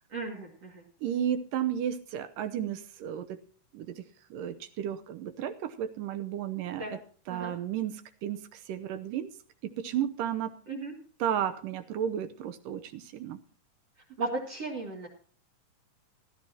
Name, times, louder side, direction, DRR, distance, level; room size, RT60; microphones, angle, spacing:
voice 1, 0.1-0.8 6.8-6.9 7.3-7.5 10.7-10.9 14.2-15.1, right 3 dB, 45° right, -2 dB, 3.1 m, -35 dB
voice 2, 1.0-3.4 3.7-4.0 4.3-7.0 7.3-9.3 9.6-10.6 11.2-13.4, right 9 dB, 75° right, 10 dB, 2.4 m, -33 dB
17.5 x 13.5 x 2.9 m, 0.43 s
omnidirectional pair, 4.1 m